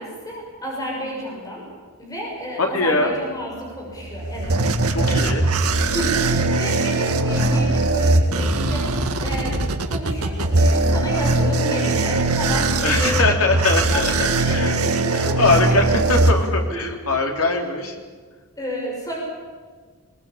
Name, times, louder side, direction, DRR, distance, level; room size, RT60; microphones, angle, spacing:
voice 1, 0.0-1.7 2.0-4.7 5.1-5.3 5.8-13.4 13.9-16.0 16.7-16.8 18.6-19.2, equal, 15° left, -2 dB, 6.7 m, -31 dB
voice 2, 2.6-3.1 4.9-5.5 12.8-14.8 15.1-18.0, left 2 dB, 75° left, 3 dB, 3.4 m, -22 dB
sound 1, 3.9-16.9, right 2 dB, 90° right, 1.9 m, -20 dB
21.5 x 20.5 x 8.6 m, 1.5 s
head